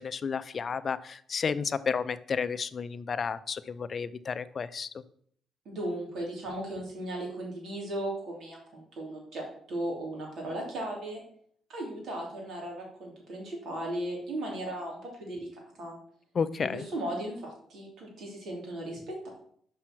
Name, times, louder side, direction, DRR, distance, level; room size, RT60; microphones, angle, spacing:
voice 1, 0.0-5.0 16.3-16.9, left 6 dB, 45° left, 14 dB, 0.5 m, -32 dB
voice 2, 5.7-11.2 11.7-15.5 15.8-16.0 16.6-19.2, right 1 dB, 65° right, -1 dB, 3.5 m, -36 dB
5.8 x 5.5 x 6.1 m, 0.63 s
cardioid pair, 90°, 0 cm